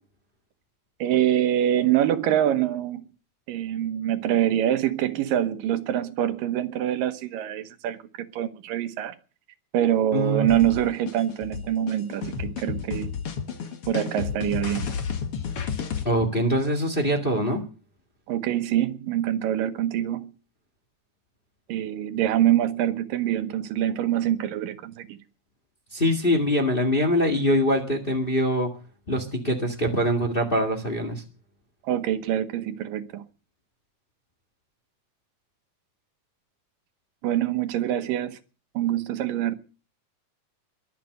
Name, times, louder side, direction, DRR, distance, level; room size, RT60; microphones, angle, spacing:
voice 1, 1.0-3.0 3.5-9.2 9.7-13.2 13.9-14.9 18.3-20.3 21.7-25.2 31.8-33.2 37.2-38.4 38.7-39.6, right 11 dB, 85° right, 2.8 m, -25 dB
voice 2, 10.1-10.5 16.0-17.6 25.9-28.7 29.1-31.2, equal, 20° left, 1.6 m, -23 dB
sound 1, 10.5-16.0, left 6 dB, 50° left, 2.2 m, -31 dB
22.5 x 7.5 x 6.6 m
omnidirectional pair, 3.8 m